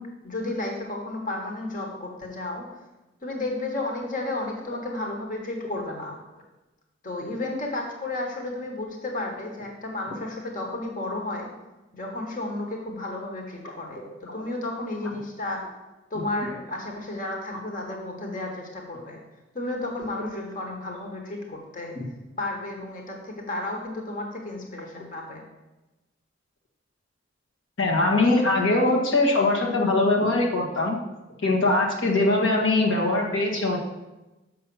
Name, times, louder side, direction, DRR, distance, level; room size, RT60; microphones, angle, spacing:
voice 1, 0.0-2.7 3.2-6.2 7.0-11.5 11.9-14.0 14.3-15.7 16.1-19.2 19.5-21.9 22.4-25.4, left 2 dB, 45° left, 2 dB, 1.4 m, -32 dB
voice 2, 27.8-31.0 31.4-33.8, left 2 dB, 90° left, 0 dB, 1.6 m, -22 dB
6.6 x 5.7 x 6.9 m, 1.0 s
head